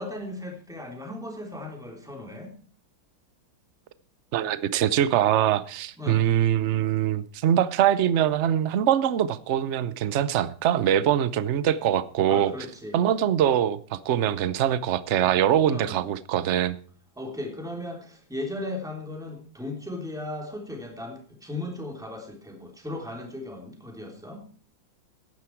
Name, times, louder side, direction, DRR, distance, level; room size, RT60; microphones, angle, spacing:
voice 1, 0.0-2.5 6.0-6.2 12.3-13.0 15.6-16.0 17.2-24.4, left 1 dB, ahead, 1 dB, 3.1 m, -36 dB
voice 2, 4.3-12.5 12.9-16.8, right 10 dB, 60° right, 16 dB, 0.7 m, -23 dB
14.5 x 10.5 x 4.6 m, 0.42 s
omnidirectional pair, 2.1 m